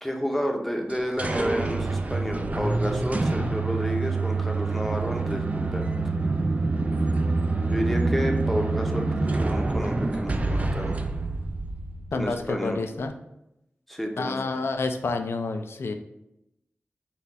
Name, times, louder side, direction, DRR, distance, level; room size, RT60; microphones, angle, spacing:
voice 1, 0.0-5.9 7.6-11.0 12.1-12.8 13.9-14.6, equal, 5° left, 2 dB, 0.6 m, -30 dB
sound 1, 0.9-12.5, right 3 dB, 35° right, 0.3 m, -26 dB
voice 2, 12.1-13.1 14.2-16.0, left 3 dB, 85° left, 7 dB, 0.4 m, -29 dB
4.2 x 2.3 x 4.0 m, 0.85 s
wide cardioid pair, 75°, 4 cm